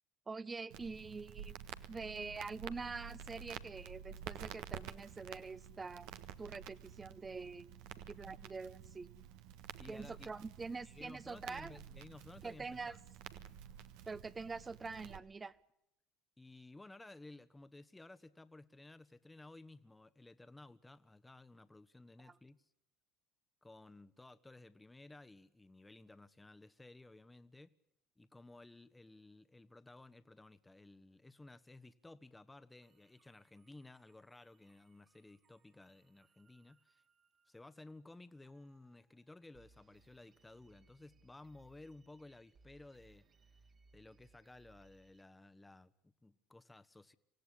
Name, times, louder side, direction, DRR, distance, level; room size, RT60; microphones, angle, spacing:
voice 1, 0.3-1.6 1.9-6.1 6.4-7.7 8.1-9.1 9.9-11.8 12.4-13.0 14.1-15.5 22.2-22.3, right 4 dB, 25° right, 1.0 m, -45 dB
Crackle, 0.7-15.2, right 9 dB, 70° right, 1.3 m, -51 dB
voice 2, 9.8-10.3 10.9-13.1 16.4-22.6 23.6-27.7 28.2-37.0 37.5-43.2 43.9-47.1, left 2 dB, 15° left, 1.3 m, -56 dB
sound 1, 32.8-37.7 38.4-39.2 39.5-45.2, right 3 dB, 40° right, 2.0 m, -70 dB
25.5 x 17.0 x 10.0 m
hypercardioid pair, 75°, 0 cm